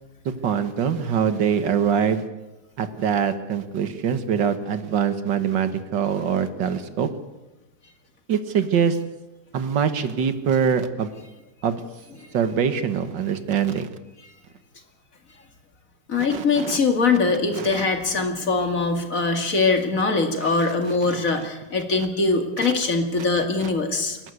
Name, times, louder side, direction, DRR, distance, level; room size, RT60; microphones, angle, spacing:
voice 1, 0.4-2.3 2.8-7.1 8.3-9.0 9.5-11.1 11.6-11.8 12.3-13.9 16.3-16.4 17.6-17.7 21.0-21.2 23.6-23.7, right 7 dB, 85° right, 10 dB, 2.0 m, -23 dB
voice 2, 16.1-24.2, left 3 dB, 50° left, 5 dB, 2.5 m, -22 dB
27.5 x 11.5 x 8.2 m, 1.1 s
omnidirectional pair, 1.9 m